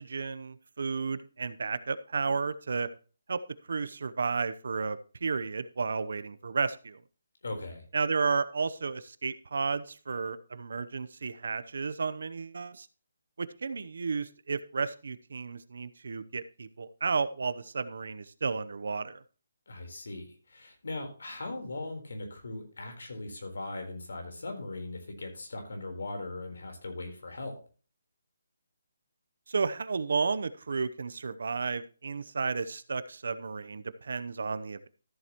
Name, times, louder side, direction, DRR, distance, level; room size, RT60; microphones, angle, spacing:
voice 1, 0.0-2.9 3.3-3.4 3.7-7.0 7.9-12.9 13.4-19.2 29.5-34.9, right 4 dB, 60° right, 14 dB, 0.7 m, -32 dB
voice 2, 7.4-7.8 19.7-27.5, left 2 dB, 75° left, 4 dB, 3.8 m, -39 dB
13.5 x 7.9 x 3.0 m, 0.38 s
hypercardioid pair, 175°, 0 cm